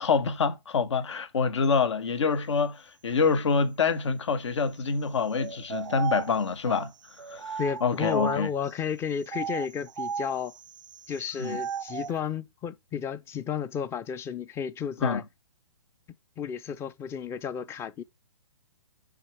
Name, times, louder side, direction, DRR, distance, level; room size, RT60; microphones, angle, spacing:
voice 1, 0.0-6.9 7.3-8.5 11.4-11.6 15.0-15.2, left 5 dB, 70° left, 1.5 m, -26 dB
sound 1, 5.3-8.7 9.2-12.2, right 7 dB, 80° right, 0.5 m, -36 dB
voice 2, 7.6-10.5 11.1-15.2 16.4-18.0, left 7 dB, 15° left, 0.6 m, -32 dB
10.0 x 4.0 x 4.7 m
hypercardioid pair, 130°, 16 cm